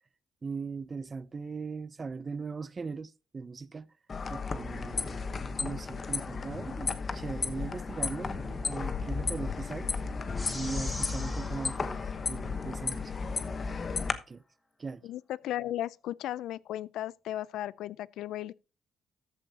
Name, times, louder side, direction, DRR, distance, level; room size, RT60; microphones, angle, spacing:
voice 1, 0.4-3.9 4.3-9.9 10.5-13.1 13.4-14.4 14.8-15.0, right 4 dB, 35° right, 0.6 m, -39 dB
sound 1, 4.1-14.1, left 5 dB, 40° left, 1.1 m, -34 dB
sound 2, 10.4-13.0, left 1 dB, 15° left, 3.6 m, -43 dB
voice 2, 15.0-18.5, left 13 dB, 85° left, 0.4 m, -35 dB
14.0 x 8.5 x 2.9 m
cardioid pair, 90°, 0 cm